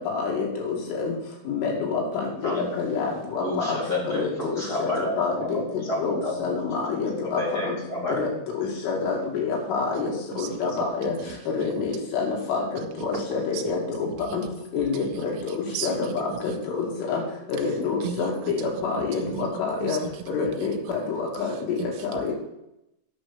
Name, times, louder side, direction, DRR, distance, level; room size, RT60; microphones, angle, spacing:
voice 1, 0.1-1.1 1.5-2.0 2.4-3.1 3.4-3.5 3.7-3.8 4.1-4.3 4.8-4.9 5.2-5.6 6.0-7.4 7.7-7.8 8.2-8.3 8.8-11.1 11.5-12.6 13.1-13.8 14.3-14.4 14.7-15.3 15.8-15.9 16.8-17.2 17.6-20.0 20.3-20.7 21.1-21.8 22.2-22.3, left 5 dB, 80° left, -2 dB, 5.0 m, -27 dB
voice 2, 3.4-6.4 7.1-8.1, left 1 dB, 20° left, -5 dB, 3.4 m, -30 dB
voice 3, 10.3-10.9 11.2-11.4 11.8-11.9 13.1-13.2 13.5-13.7 15.1-15.2 15.5-16.0 16.5-16.6 18.0-18.3 19.2-19.5 19.8-20.2 20.6-20.7 21.8-22.2, right 9 dB, 85° right, 7 dB, 3.0 m, -35 dB
9.4 x 6.3 x 7.0 m, 0.85 s
omnidirectional pair, 5.5 m